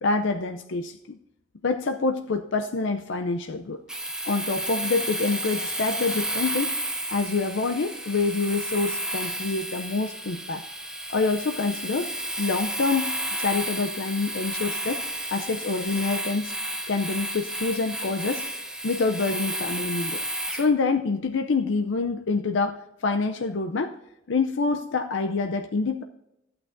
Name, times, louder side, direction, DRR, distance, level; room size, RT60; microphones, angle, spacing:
voice 1, 0.0-1.2 1.6-3.8 4.2-6.8 7.1-10.6 11.1-12.1 12.4-15.1 15.3-16.6 16.9-18.5 18.8-20.2 20.5-24.0 24.3-26.0, left 3 dB, 60° left, 6 dB, 0.5 m, -26 dB
Domestic sounds home sounds, 3.9-20.7, right 1 dB, 5° right, 0.7 m, -32 dB
13.0 x 8.8 x 2.6 m, 0.86 s
head